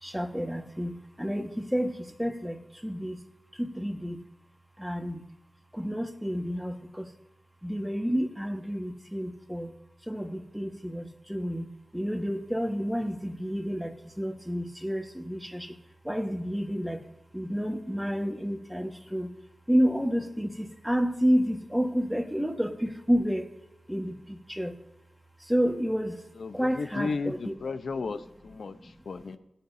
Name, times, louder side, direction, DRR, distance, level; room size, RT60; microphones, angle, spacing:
voice 1, 0.0-3.2 3.5-4.2 4.8-5.2 5.7-7.1 7.6-9.7 10.0-15.8 16.0-17.0 17.3-19.3 19.7-23.5 23.9-24.8 25.4-26.2 26.5-27.5 28.7-28.9 29.2-29.4, equal, ahead, 4 dB, 1.4 m, -30 dB
voice 2, 26.4-29.4, left 4 dB, 80° left, 10 dB, 0.6 m, -34 dB
18.5 x 8.9 x 2.7 m, 0.91 s
wide cardioid pair, 70°, 0 cm